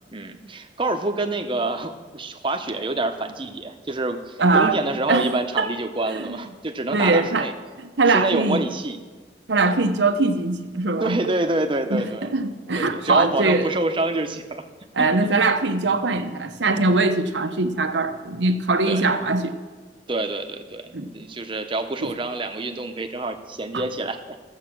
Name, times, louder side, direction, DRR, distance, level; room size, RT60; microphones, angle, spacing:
voice 1, 0.1-7.5 8.1-9.0 11.0-12.3 12.7-14.6 15.0-15.1 18.9-19.0 20.1-20.8 21.1-24.2, right 2 dB, 30° right, 6 dB, 0.9 m, -27 dB
voice 2, 4.4-4.8 5.1-5.7 6.1-6.4 6.9-7.5 7.8-8.6 9.5-11.2 11.9-12.0 12.3-13.7 14.9-19.5 20.9-21.2 22.0-22.1 23.7-23.8, right 3 dB, 90° right, 7 dB, 1.0 m, -21 dB
14.0 x 7.4 x 6.1 m, 1.4 s
head